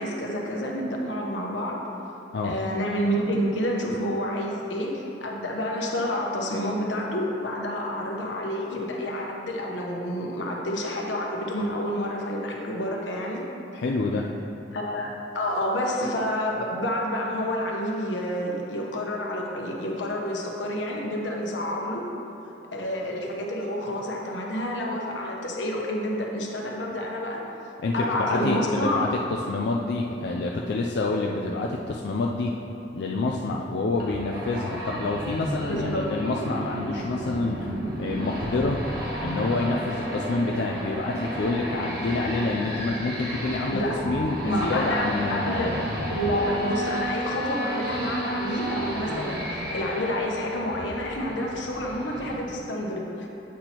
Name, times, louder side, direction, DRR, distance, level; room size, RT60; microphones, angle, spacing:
voice 1, 0.0-1.8 2.4-13.5 14.7-22.1 22.7-27.4 27.9-29.0 35.6-36.2 43.6-44.0 44.4-45.8 46.1-53.3, equal, 85° left, -1 dB, 1.0 m, -29 dB
voice 2, 13.7-14.3 27.8-32.5 32.9-37.7 38.0-38.8 39.2-45.7, left 3 dB, 65° left, -1 dB, 0.4 m, -27 dB
sound 1, 34.0-52.3, equal, 60° right, 1.3 m, -32 dB
8.4 x 6.0 x 3.0 m, 3.0 s
head